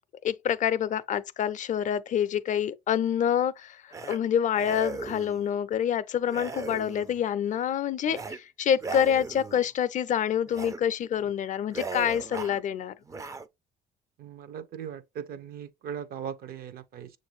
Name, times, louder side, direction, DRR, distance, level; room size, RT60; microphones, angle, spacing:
voice 1, 0.2-12.9, left 9 dB, 50° left, 0.4 m, -27 dB
sound 1, 3.9-4.2 4.5-5.4 6.3-7.2 8.1-8.4 8.7-9.7 10.5-10.8 11.2-11.3 11.7-12.6 13.1-13.5, right 4 dB, 20° right, 0.4 m, -38 dB
voice 2, 14.2-17.1, right 8 dB, 60° right, 0.6 m, -39 dB
6.8 x 2.6 x 3.0 m
cardioid pair, 110°, 17 cm